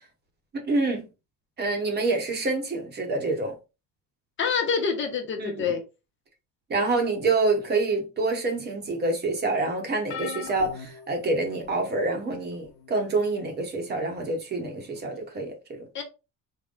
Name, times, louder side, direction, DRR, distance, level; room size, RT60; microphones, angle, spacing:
voice 1, 0.5-1.0 1.6-3.5 5.4-5.7 6.7-15.9, right 3 dB, 35° right, 0.9 m, -27 dB
voice 2, 4.4-5.8 15.9-16.0, left 6 dB, 40° left, 0.8 m, -26 dB
sound 1, 10.1-11.9 12.6-12.9 14.2-14.3, left 7 dB, 70° left, 0.9 m, -40 dB
3.8 x 2.1 x 3.8 m
cardioid pair, 150°, 31 cm